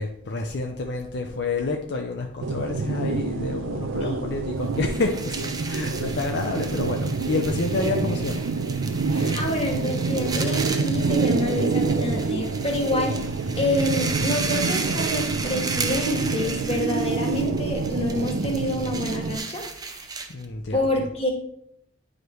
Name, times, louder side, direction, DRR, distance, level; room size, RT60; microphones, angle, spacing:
voice 1, 0.0-8.4 20.3-21.1, left 3 dB, 60° left, 2 dB, 0.6 m, -29 dB
sound 1, 2.4-19.4, right 4 dB, 85° right, 0.5 m, -27 dB
sound 2, 4.7-20.5, right 4 dB, 20° right, 0.6 m, -34 dB
voice 2, 9.1-13.2 13.6-19.6 20.7-21.3, left 1 dB, 30° left, 1 dB, 1.4 m, -27 dB
9.5 x 5.0 x 3.1 m, 0.75 s
head